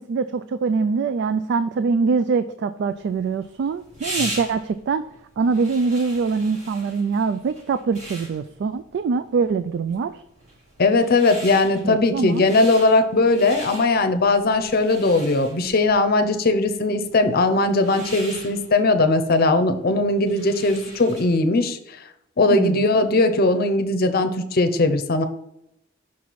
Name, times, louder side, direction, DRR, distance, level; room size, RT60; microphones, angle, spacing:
voice 1, 0.0-5.0 5.4-10.2 11.8-12.5 22.5-22.8, right 4 dB, 60° right, 11 dB, 0.3 m, -23 dB
sound 1, 2.9-21.5, right 1 dB, 40° right, 2.0 m, -39 dB
voice 2, 10.8-21.8 22.4-25.2, left 2 dB, 50° left, 8 dB, 0.7 m, -19 dB
6.0 x 4.6 x 4.1 m, 0.81 s
head